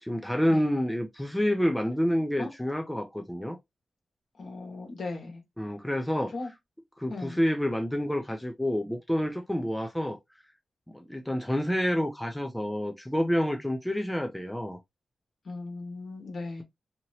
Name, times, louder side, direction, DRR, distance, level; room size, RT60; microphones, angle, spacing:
voice 1, 0.0-3.6 5.6-6.3 7.0-10.2 10.9-14.8, equal, 5° left, 0.4 m, -28 dB
voice 2, 4.4-5.4 6.3-6.5 7.1-7.4 15.4-16.6, left 3 dB, 60° left, 1.4 m, -37 dB
2.8 x 2.7 x 2.7 m
wide cardioid pair, 150°, 0 cm